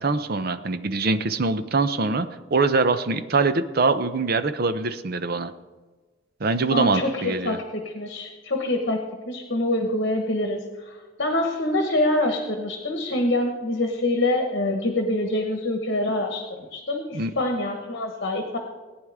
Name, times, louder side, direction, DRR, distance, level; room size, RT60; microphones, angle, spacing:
voice 1, 0.0-5.5 6.4-7.6 17.1-17.3, right 3 dB, 55° right, 11 dB, 0.7 m, -23 dB
voice 2, 6.7-18.6, left 1 dB, 60° left, 3 dB, 1.4 m, -25 dB
18.5 x 9.8 x 3.6 m, 1.3 s
head